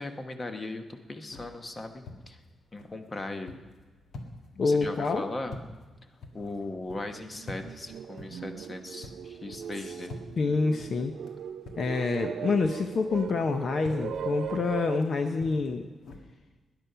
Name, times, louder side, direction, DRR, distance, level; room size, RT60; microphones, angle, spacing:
voice 1, 0.0-2.4 2.7-3.6 4.6-5.6 6.3-10.1, left 2 dB, 20° left, 6 dB, 1.0 m, -38 dB
sound 1, 0.9-12.3 12.6-16.2, left 2 dB, 60° left, 1.8 m, -48 dB
voice 2, 4.6-5.3 10.4-11.2 11.8-15.9, left 4 dB, 40° left, 6 dB, 0.7 m, -27 dB
sound 2, 6.4-6.5 6.9-15.0, right 8 dB, 60° right, 0.4 m, -39 dB
19.5 x 10.5 x 5.6 m, 1.3 s
wide cardioid pair, 180°, 0 cm